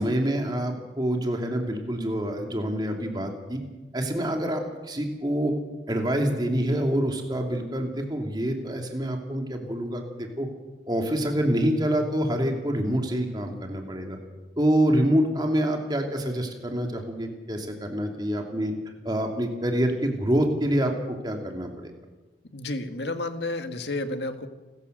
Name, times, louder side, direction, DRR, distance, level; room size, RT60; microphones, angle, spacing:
voice 1, 0.0-3.6 3.9-5.5 5.9-10.5 10.9-14.2 14.6-18.7 19.0-20.9 21.2-21.9, equal, 25° right, 3 dB, 2.7 m, -26 dB
voice 2, 22.5-24.5, left 2 dB, 80° left, 8 dB, 1.8 m, -31 dB
29.0 x 14.5 x 6.7 m, 1.2 s
head